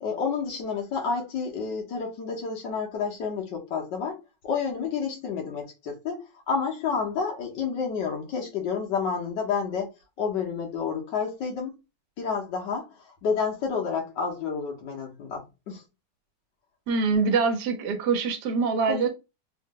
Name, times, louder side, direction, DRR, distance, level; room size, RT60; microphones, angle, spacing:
voice 1, 0.0-4.1 4.4-9.9 10.2-11.8 12.2-12.9 13.2-15.8 18.9-19.1, left 5 dB, 85° left, 1.8 m, -30 dB
voice 2, 16.9-19.1, right 5 dB, 75° right, 1.3 m, -24 dB
3.9 x 2.1 x 3.7 m
omnidirectional pair, 1.9 m